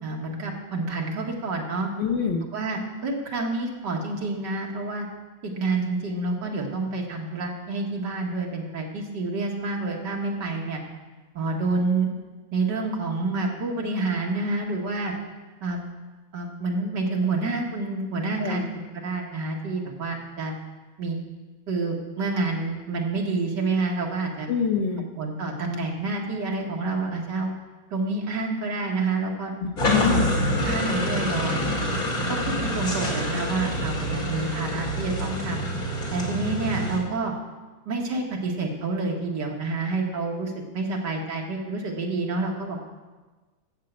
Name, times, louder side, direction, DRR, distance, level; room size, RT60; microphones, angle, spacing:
voice 1, 0.0-1.9 2.5-5.1 5.4-10.8 11.3-12.1 12.5-15.1 15.6-15.8 16.3-20.6 21.0-21.2 21.7-24.5 25.2-27.5 27.9-29.5 29.9-30.2 30.5-31.6 32.3-35.6 36.1-37.3 37.9-42.8, right 3 dB, 70° right, 0 dB, 2.2 m, -28 dB
voice 2, 2.0-2.4 18.4-18.6 24.5-25.1 29.6-30.3, left 6 dB, 80° left, 5 dB, 1.6 m, -25 dB
sound 1, 29.8-37.0, equal, 50° left, 2.5 m, -27 dB
8.5 x 7.8 x 7.5 m, 1.3 s
omnidirectional pair, 2.0 m